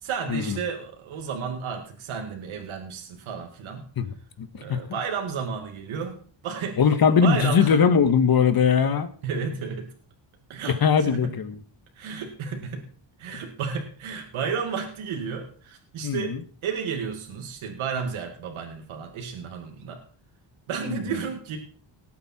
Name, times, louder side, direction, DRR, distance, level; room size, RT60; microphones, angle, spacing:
voice 1, 0.0-3.8 4.5-6.8 7.2-7.8 9.2-9.9 10.5-11.3 12.0-12.8 13.2-20.0 20.7-21.6, right 6 dB, 85° right, 3 dB, 2.4 m, -32 dB
voice 2, 4.0-4.8 6.8-9.1 10.7-11.6 16.0-16.4 20.9-21.0, left 6 dB, 50° left, 9 dB, 1.7 m, -21 dB
19.0 x 8.9 x 4.4 m, 0.42 s
cardioid pair, 115°, 47 cm